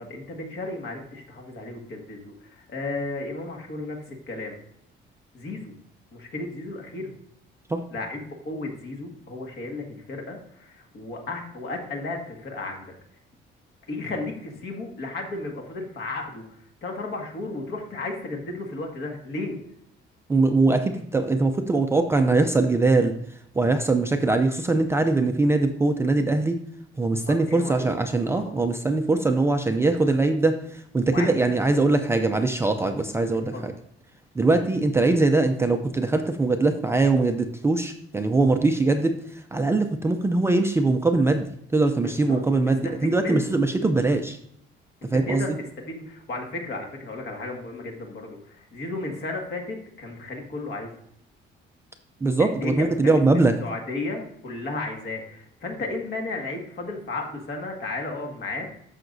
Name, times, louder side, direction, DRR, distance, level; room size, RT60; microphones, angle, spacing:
voice 1, 0.0-4.6 5.3-5.7 6.1-7.1 7.9-12.9 13.9-19.6 27.3-27.9 28.3-28.6 31.1-31.4 32.8-33.0 33.5-33.6 42.0-42.4 42.8-43.6 45.0-45.5 45.9-50.9 52.4-53.2 53.6-58.7, left 2 dB, 55° left, 2 dB, 1.8 m, -34 dB
voice 2, 20.3-23.1 23.5-26.6 27.0-33.7 34.4-44.4 45.0-45.4 52.2-53.6, right 3 dB, 10° right, 5 dB, 0.4 m, -22 dB
14.0 x 5.7 x 2.6 m, 0.71 s
cardioid pair, 170°, 20 cm